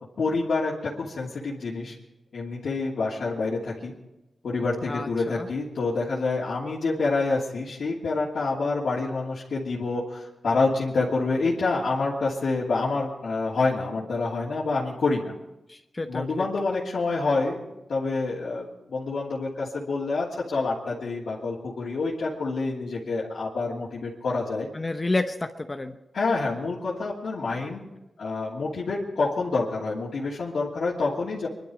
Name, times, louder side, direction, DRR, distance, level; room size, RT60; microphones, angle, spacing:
voice 1, 0.2-1.9 2.3-3.9 4.4-15.3 16.1-24.7 26.1-27.8 28.2-31.5, left 3 dB, 80° left, -7 dB, 2.8 m, -27 dB
voice 2, 4.9-5.5 15.7-16.5 24.7-26.0, left 2 dB, 30° left, 7 dB, 0.9 m, -30 dB
23.5 x 12.0 x 5.1 m, 0.95 s
wide cardioid pair, 80°, 0 cm